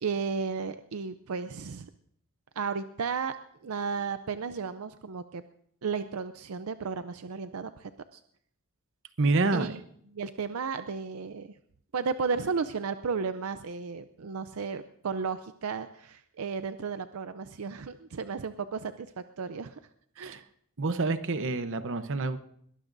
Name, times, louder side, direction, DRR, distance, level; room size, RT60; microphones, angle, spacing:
voice 1, 0.0-1.9 2.6-3.4 3.6-5.4 5.8-8.2 9.5-9.8 10.1-11.5 11.9-19.1 19.4-19.8 20.2-20.5, right 5 dB, 85° right, 10 dB, 0.5 m, -34 dB
voice 2, 9.2-9.8 20.2-20.4 20.8-22.4, right 3 dB, 65° right, 11 dB, 0.9 m, -27 dB
22.0 x 18.0 x 2.6 m, 0.67 s
head